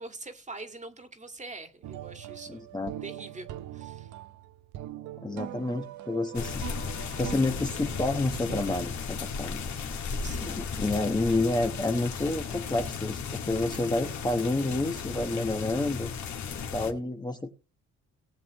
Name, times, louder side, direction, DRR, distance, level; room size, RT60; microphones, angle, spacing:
voice 1, 0.0-4.1 10.2-10.6, right 3 dB, 25° right, 1.9 m, -44 dB
sound 1, 1.8-8.6, right 13 dB, 75° right, 0.8 m, -42 dB
voice 2, 2.5-2.9 5.2-6.6 7.2-9.6 10.4-16.1 16.5-17.5, left 2 dB, 15° left, 1.3 m, -29 dB
sound 2, 6.3-16.9, left 5 dB, 70° left, 2.2 m, -35 dB
19.0 x 7.6 x 3.0 m
cardioid pair, 90°, 30 cm